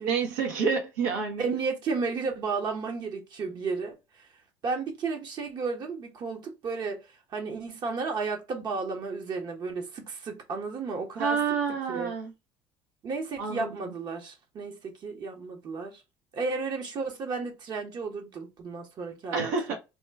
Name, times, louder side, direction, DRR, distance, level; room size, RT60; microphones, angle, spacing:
voice 1, 0.0-1.5 11.2-12.3 13.4-13.8 19.3-19.8, right 5 dB, 85° right, 0.9 m, -28 dB
voice 2, 1.4-4.3 4.6-11.4 11.9-12.1 13.0-16.0 16.3-19.8, right 4 dB, 50° right, 0.9 m, -33 dB
2.9 x 2.2 x 3.4 m
supercardioid pair, 75°, 9 cm